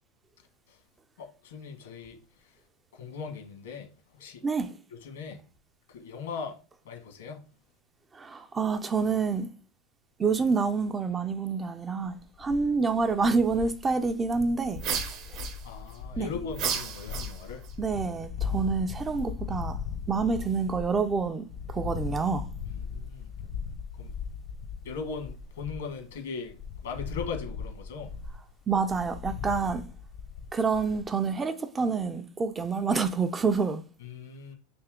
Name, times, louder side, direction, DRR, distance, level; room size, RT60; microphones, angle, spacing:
voice 1, 1.2-2.6 2.9-3.9 4.2-4.4 5.0-5.4 5.9-6.6 6.8-7.4 15.6-17.6 22.7-23.3 24.0-24.1 24.8-28.1 34.0-34.5, left 5 dB, 90° left, 1.4 m, -39 dB
voice 2, 8.1-9.5 10.2-14.8 15.3-15.4 16.2-16.3 17.8-19.8 20.1-22.5 28.7-29.8 30.5-33.8, right 4 dB, 20° right, 0.3 m, -27 dB
sound 1, 12.0-26.2 26.4-31.0, left 6 dB, 55° left, 0.6 m, -38 dB
sound 2, 14.8-16.0 16.5-17.7, right 7 dB, 45° right, 0.7 m, -33 dB
3.3 x 2.8 x 3.6 m
supercardioid pair, 130°, 0 cm